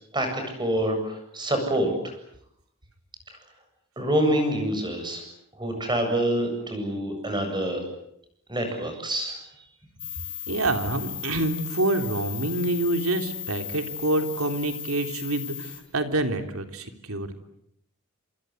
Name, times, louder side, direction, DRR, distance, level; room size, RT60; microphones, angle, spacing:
voice 1, 0.1-1.9 4.0-5.2 5.6-7.8 8.5-9.3, right 1 dB, 20° right, 5 dB, 7.8 m, -26 dB
sound 1, 10.0-15.8, left 10 dB, 25° left, 6.3 m, -36 dB
voice 2, 10.5-17.3, right 2 dB, 85° right, 6 dB, 3.5 m, -27 dB
27.5 x 27.0 x 8.0 m, 0.74 s
head